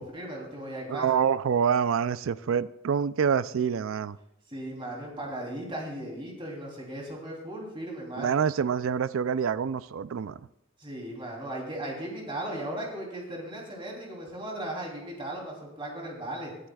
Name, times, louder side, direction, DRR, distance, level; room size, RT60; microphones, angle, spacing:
voice 1, 0.0-1.1 4.5-8.4 10.8-16.5, right 1 dB, 25° right, 3.1 m, -37 dB
voice 2, 0.9-4.2 8.2-10.4, right 7 dB, 70° right, 0.4 m, -26 dB
20.0 x 11.0 x 2.3 m
head